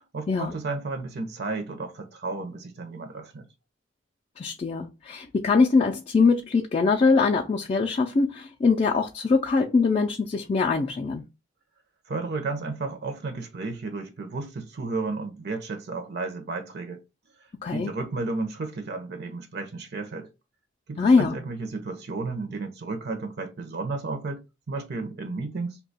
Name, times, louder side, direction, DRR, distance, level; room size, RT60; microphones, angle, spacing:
voice 1, 0.1-3.5 12.1-17.0 17.7-20.3 20.9-25.8, right 3 dB, 60° right, 0.6 m, -33 dB
voice 2, 4.4-11.2 17.6-17.9 21.0-21.4, left 4 dB, 30° left, 0.3 m, -22 dB
2.8 x 2.2 x 3.9 m
head